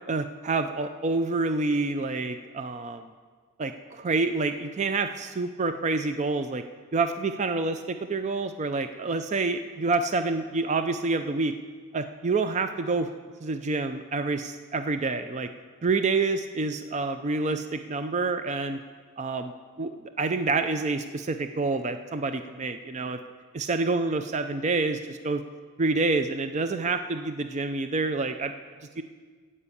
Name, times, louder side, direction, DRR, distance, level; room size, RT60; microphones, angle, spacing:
voice 1, 0.1-3.0 3.6-6.6 6.9-11.5 11.9-13.1 13.4-15.5 15.8-18.8 19.2-19.5 19.8-23.2 23.5-25.4 25.8-28.5 29.0-29.1, right 3 dB, 30° right, 9 dB, 0.4 m, -27 dB
14.5 x 5.5 x 8.4 m, 1.6 s
head